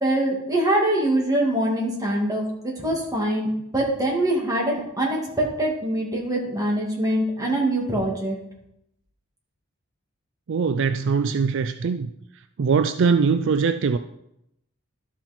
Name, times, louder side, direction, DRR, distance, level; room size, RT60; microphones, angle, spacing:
voice 1, 0.0-3.5 3.7-8.4, right 1 dB, 15° right, -2 dB, 2.3 m, -23 dB
voice 2, 10.5-12.1 12.6-14.0, right 5 dB, 60° right, 10 dB, 0.4 m, -21 dB
12.5 x 5.9 x 4.4 m, 0.80 s
head